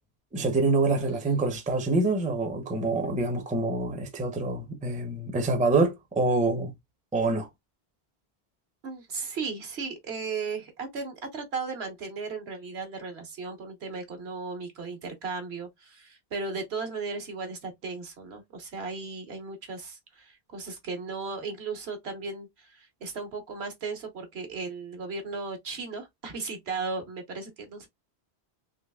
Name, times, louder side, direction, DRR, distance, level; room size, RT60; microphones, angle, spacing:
voice 1, 0.3-6.7 7.1-7.5, right 3 dB, 10° right, 0.6 m, -26 dB
voice 2, 8.8-27.9, right 4 dB, 70° right, 1.4 m, -36 dB
3.8 x 3.1 x 2.3 m
omnidirectional pair, 1.1 m